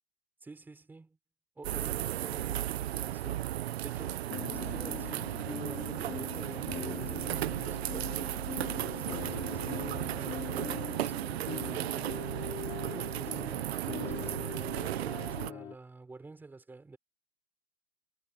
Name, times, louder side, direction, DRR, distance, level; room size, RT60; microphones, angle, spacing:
voice 1, 0.4-1.2 1.6-3.5 3.8-8.1 8.8-12.3 12.9-17.0, right 3 dB, 5° right, 4.5 m, -48 dB
sound 1, 1.6-15.5, right 13 dB, 50° right, 0.8 m, -35 dB
sound 2, 4.3-15.8, left 12 dB, 10° left, 0.8 m, -42 dB
supercardioid pair, 175°, 39 cm